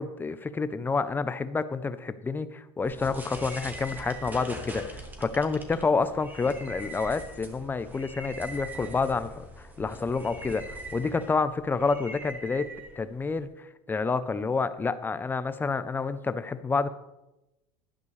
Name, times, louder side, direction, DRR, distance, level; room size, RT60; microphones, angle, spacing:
voice 1, 0.0-12.7 13.0-13.5 13.9-16.9, left 4 dB, 15° left, 12 dB, 0.6 m, -29 dB
sound 1, 2.8-13.5, right 1 dB, 10° right, 1.7 m, -42 dB
12.0 x 11.5 x 3.2 m, 0.94 s
supercardioid pair, 130°, 15 cm